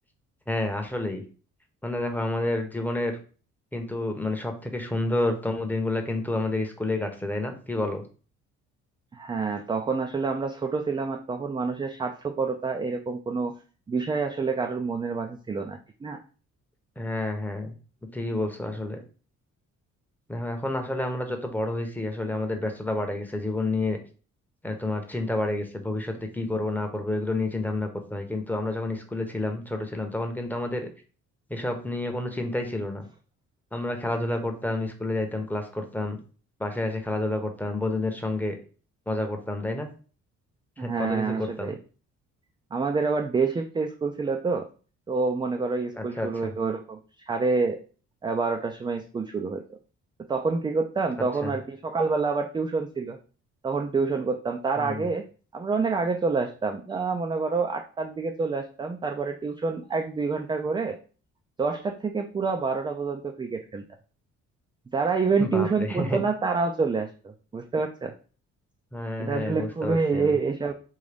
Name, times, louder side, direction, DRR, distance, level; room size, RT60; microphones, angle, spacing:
voice 1, 0.5-1.2 1.8-3.1 3.7-8.0 17.0-17.7 18.1-19.0 20.3-24.0 24.6-30.9 31.5-33.1 33.7-36.2 36.6-38.5 39.1-39.9 40.8-41.7 45.9-46.5 51.4-51.6 54.8-55.1 65.4-66.2 68.9-70.3, left 2 dB, 5° left, 4 dB, 0.7 m, -29 dB
voice 2, 9.1-13.5 13.9-16.2 40.8-41.8 42.7-44.7 45.1-47.0 47.3-47.8 48.2-49.6 50.3-53.2 53.6-55.2 55.5-61.0 61.6-63.8 64.9-68.1 69.2-70.7, right 4 dB, 15° right, 4 dB, 0.3 m, -27 dB
3.7 x 2.6 x 3.3 m, 0.39 s
cardioid pair, 90°, 30 cm